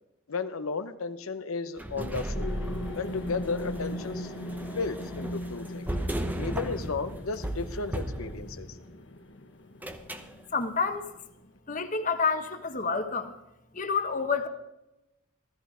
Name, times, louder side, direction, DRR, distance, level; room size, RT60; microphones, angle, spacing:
voice 1, 0.3-2.5 2.9-4.3 4.7-5.9 6.3-8.8, left 4 dB, 85° left, 9 dB, 0.8 m, -34 dB
sound 1, 1.8-8.9 9.8-10.3, right 1 dB, 10° right, 0.8 m, -36 dB
sound 2, 2.4-11.6, left 1 dB, 60° left, 1.2 m, -40 dB
voice 2, 10.5-11.0 11.7-13.3 13.7-14.5, left 5 dB, 35° left, 6 dB, 1.1 m, -28 dB
15.0 x 13.5 x 5.0 m, 0.94 s
head